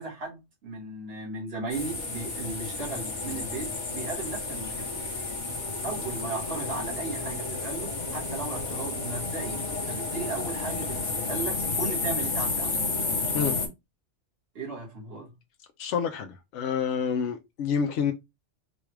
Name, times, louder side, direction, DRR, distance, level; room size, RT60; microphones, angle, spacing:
voice 1, 0.0-5.2 5.8-12.7 14.6-15.3, right 3 dB, 55° right, 1.7 m, -36 dB
sound 1, 1.7-13.7, left 3 dB, 45° left, 1.0 m, -31 dB
voice 2, 15.8-18.1, left 7 dB, 80° left, 0.9 m, -28 dB
4.0 x 2.4 x 3.1 m
omnidirectional pair, 1.2 m